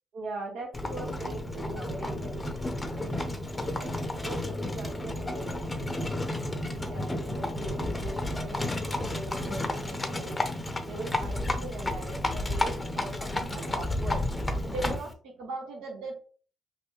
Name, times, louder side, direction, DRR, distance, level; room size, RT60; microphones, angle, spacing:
voice 1, 0.1-3.0 3.8-5.9 6.4-14.2 14.6-16.2, right 2 dB, 85° right, 1 dB, 0.8 m, -41 dB
Livestock farm animals working animals, 0.7-15.1, left 1 dB, 15° left, 0.6 m, -32 dB
3.4 x 2.5 x 3.0 m, 0.41 s
cardioid pair, 90°, 0 cm